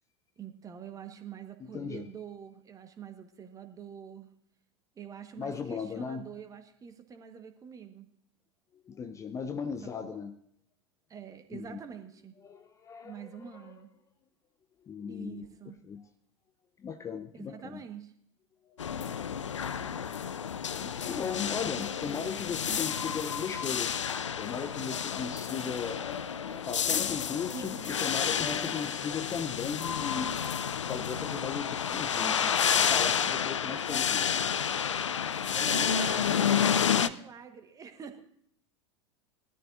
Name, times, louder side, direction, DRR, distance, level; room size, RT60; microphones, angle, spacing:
voice 1, 0.4-4.3 4.9-8.1 10.0-10.2 11.1-12.4 13.0-13.9 15.1-15.8 17.3-18.1 22.0-22.2 22.5-22.8 27.5-27.9 35.5-38.2, right 7 dB, 20° right, 7 dB, 1.2 m, -45 dB
voice 2, 1.6-2.1 5.4-6.3 8.9-10.4 11.5-11.8 12.4-13.7 14.8-15.5 15.8-16.1 16.8-17.8 18.7-30.4 30.9-34.3, left 6 dB, 20° left, 9 dB, 0.5 m, -38 dB
sound 1, 18.8-37.1, left 8 dB, 80° left, 0.4 m, -30 dB
19.0 x 13.0 x 2.5 m, 0.67 s
figure-of-eight pair, 85°, 15 cm